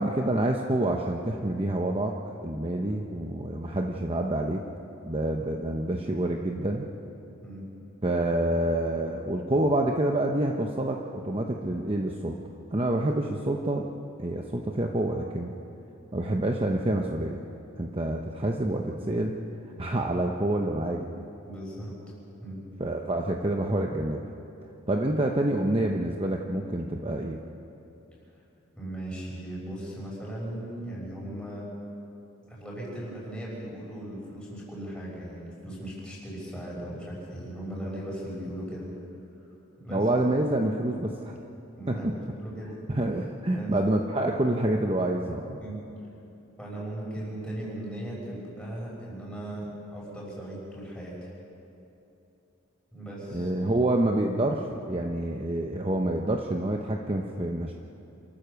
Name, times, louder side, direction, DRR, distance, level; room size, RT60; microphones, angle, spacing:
voice 1, 0.0-2.2 2.4-4.6 5.0-6.9 8.0-13.9 14.2-15.5 16.1-17.4 17.8-19.4 19.8-21.2 22.8-24.2 24.9-27.4 39.9-41.4 41.9-42.1 42.9-45.6 53.3-57.7, right 1 dB, 25° right, 2 dB, 0.9 m, -27 dB
voice 2, 21.4-22.0 22.4-22.6 28.8-31.7 32.5-38.9 39.8-40.0 41.8-42.7 43.5-43.7 45.6-45.8 46.6-51.3 52.9-53.5, right 1 dB, 5° left, -5 dB, 6.2 m, -38 dB
27.5 x 14.5 x 6.9 m, 2.9 s
head